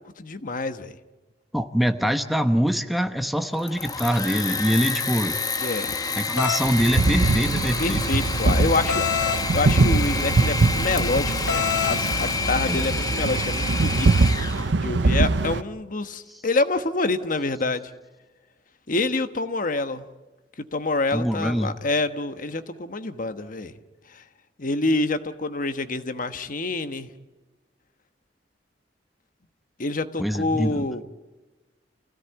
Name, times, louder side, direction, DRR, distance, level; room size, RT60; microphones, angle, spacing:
voice 1, 0.2-1.0 5.6-6.0 7.8-9.1 9.3-14.1 14.8-17.8 18.9-20.0 20.6-23.7 24.1-24.2 24.6-27.1 29.8-31.0, left 2 dB, 50° left, 9 dB, 1.2 m, -27 dB
voice 2, 1.5-5.4 6.2-8.0 12.6-12.9 21.1-21.7 30.2-30.9, equal, ahead, 8 dB, 1.0 m, -24 dB
Engine / Mechanisms, 3.5-14.7, left 4 dB, 20° left, 1.1 m, -29 dB
sound 1, 6.4-6.7 8.9-9.4 11.5-12.0, left 9 dB, 70° left, 1.5 m, -25 dB
sound 2, 6.6-15.6, right 3 dB, 80° right, 0.7 m, -23 dB
29.0 x 16.5 x 9.2 m, 1.2 s
head